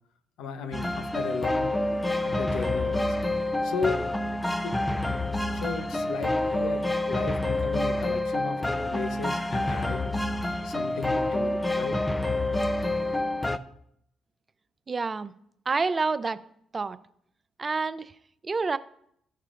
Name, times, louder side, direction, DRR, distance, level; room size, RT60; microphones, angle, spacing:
voice 1, 0.4-1.8 2.2-3.2 3.6-4.0 4.6-4.8 5.5-8.6 8.9-10.2 10.6-12.0, left 4 dB, 80° left, 8 dB, 0.8 m, -35 dB
sound 1, 0.7-13.6, left 2 dB, 15° left, 0.6 m, -28 dB
voice 2, 14.9-15.3 15.7-16.4 16.7-17.0 17.6-18.1 18.4-18.8, right 4 dB, 35° right, 14 dB, 0.5 m, -28 dB
15.0 x 5.5 x 2.5 m, 0.70 s
supercardioid pair, 55°, 0 cm